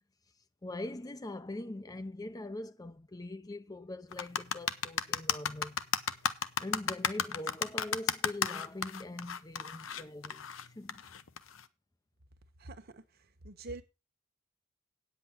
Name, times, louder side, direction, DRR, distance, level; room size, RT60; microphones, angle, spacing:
voice 1, 0.6-5.8 6.6-11.0, left 1 dB, 20° left, 0.5 m, -42 dB
sound 1, 4.1-11.6, left 7 dB, 75° left, 0.8 m, -33 dB
voice 2, 12.6-13.8, right 2 dB, 50° right, 1.2 m, -46 dB
9.2 x 8.0 x 5.7 m
head